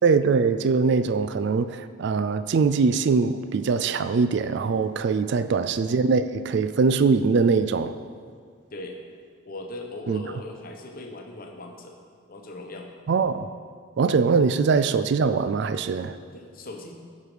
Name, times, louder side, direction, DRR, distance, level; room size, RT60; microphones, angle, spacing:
voice 1, 0.0-7.9 10.1-10.2 13.1-13.5 14.0-16.2, right 5 dB, 60° right, 12 dB, 0.3 m, -22 dB
voice 2, 5.3-5.6 8.7-9.0 9.4-12.0 12.3-12.9 16.3-16.9, left 2 dB, 45° left, 3 dB, 0.9 m, -39 dB
11.0 x 4.7 x 5.0 m, 2.1 s
head